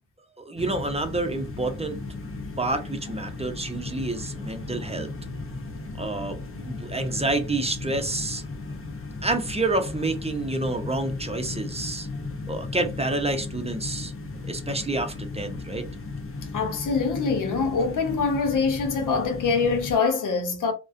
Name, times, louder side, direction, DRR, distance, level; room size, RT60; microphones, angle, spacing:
voice 1, 0.4-2.0 2.6-5.1 6.0-8.4 9.2-12.1 12.5-14.1 14.5-15.9, right 2 dB, 20° right, 0.6 m, -28 dB
sound 1, 0.6-20.0, left 3 dB, 45° left, 0.8 m, -36 dB
voice 2, 16.5-20.7, left 5 dB, 85° left, 0.7 m, -24 dB
2.3 x 2.2 x 2.5 m
cardioid pair, 40°, 30 cm